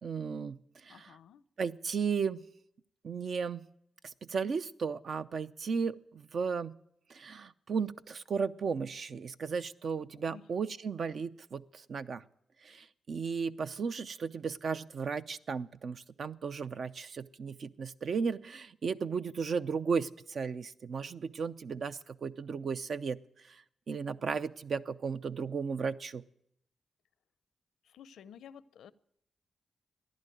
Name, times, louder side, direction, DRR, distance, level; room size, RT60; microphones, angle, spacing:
voice 1, 0.0-1.2 1.6-2.4 3.0-3.6 4.0-6.7 7.1-12.2 12.6-26.2, right 5 dB, 65° right, 11 dB, 0.6 m, -35 dB
voice 2, 0.9-1.4 10.1-10.5 27.8-28.9, left 8 dB, 85° left, 17 dB, 0.5 m, -53 dB
15.0 x 11.0 x 9.1 m, 0.74 s
cardioid pair, 55°, 0 cm